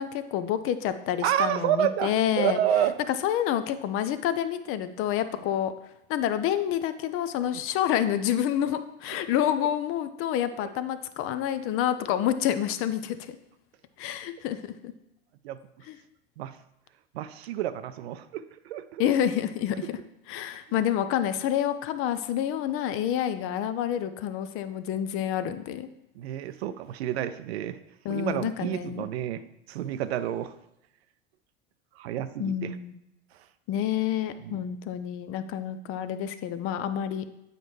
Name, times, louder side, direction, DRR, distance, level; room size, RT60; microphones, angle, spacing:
voice 1, 0.0-2.6 3.1-5.7 6.1-13.4 14.0-14.9 15.8-16.0 19.0-20.0 20.3-25.9 28.0-29.1 32.4-33.0 33.7-37.2, left 10 dB, 45° left, 12 dB, 0.5 m, -28 dB
voice 2, 1.2-2.1 2.4-3.0 9.6-9.7 15.4-15.6 16.4-16.6 17.1-19.1 26.2-27.8 28.1-30.5 32.0-32.7 34.4-34.6, right 11 dB, 75° right, 12 dB, 0.5 m, -29 dB
8.0 x 4.2 x 3.1 m, 0.85 s
hypercardioid pair, 90°, 32 cm